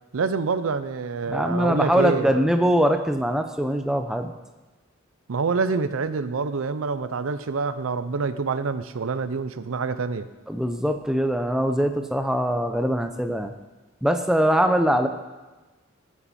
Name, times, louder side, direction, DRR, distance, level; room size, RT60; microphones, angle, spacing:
voice 1, 0.1-2.4 5.3-10.3, right 4 dB, 80° right, 12 dB, 0.5 m, -26 dB
voice 2, 1.3-4.3 10.5-13.5 14.0-15.1, equal, 5° right, 6 dB, 0.5 m, -22 dB
14.0 x 7.3 x 4.2 m, 1.2 s
head